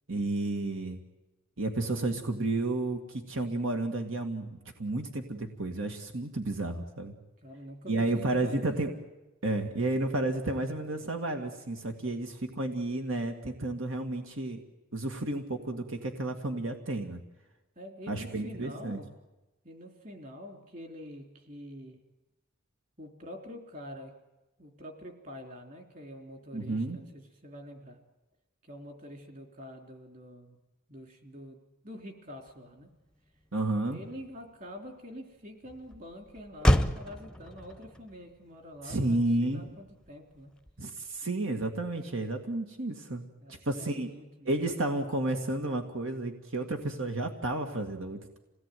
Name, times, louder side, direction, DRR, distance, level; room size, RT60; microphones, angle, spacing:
voice 1, 0.1-1.0 1.6-7.1 7.9-8.9 9.4-14.6 14.9-17.2 18.1-19.0 26.5-27.0 33.5-34.0 38.8-39.6 40.8-43.2 43.5-44.1 44.4-48.4, right 2 dB, 75° right, 4 dB, 2.2 m, -31 dB
voice 2, 7.4-8.8 17.8-19.1 19.6-22.0 23.0-24.1 24.6-28.0 28.6-30.6 30.9-32.9 33.8-40.5 43.4-44.6, equal, 40° right, 4 dB, 3.5 m, -46 dB
Motor vehicle (road), 32.5-41.2, equal, 5° left, 0.8 m, -33 dB
27.0 x 18.5 x 9.4 m, 1.1 s
head